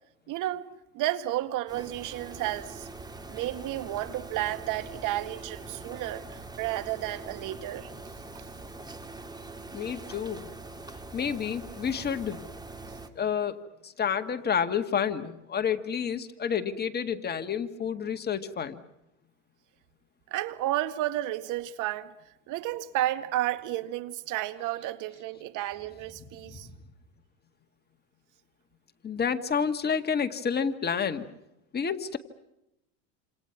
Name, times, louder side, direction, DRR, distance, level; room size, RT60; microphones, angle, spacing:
voice 1, 0.3-0.7 0.9-2.9 3.3-7.9 20.3-22.1 22.5-26.7, right 14 dB, 50° right, 2.1 m, -32 dB
sound 1, 1.7-13.1, right 2 dB, 10° right, 2.5 m, -43 dB
voice 2, 9.7-10.5 11.1-12.5 13.2-18.8 26.5-26.8 29.0-31.3 31.7-32.2, left 7 dB, 25° left, 1.9 m, -30 dB
28.5 x 27.5 x 6.0 m
supercardioid pair, 110°, 39 cm